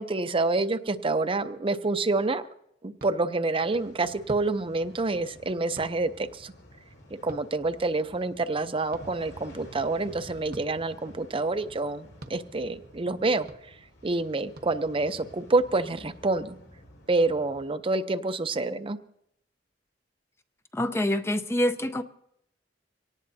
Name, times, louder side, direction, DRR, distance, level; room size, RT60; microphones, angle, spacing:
voice 1, 0.0-2.4 2.8-6.5 7.2-13.5 14.0-16.6 17.1-19.0, right 3 dB, 30° right, 11 dB, 0.6 m, -27 dB
sound 1, 3.0-3.1 4.3-4.5 5.8-5.9 7.3-7.5 8.9-9.0 10.5-10.7 12.2-12.4 13.5-13.6 14.5-14.7, right 1 dB, 55° right, 1.0 m, -43 dB
sound 2, 3.5-17.7, equal, 90° left, 5.2 m, -51 dB
voice 2, 20.7-22.0, left 1 dB, 15° left, 9 dB, 0.5 m, -26 dB
24.5 x 18.0 x 2.7 m, 0.76 s
head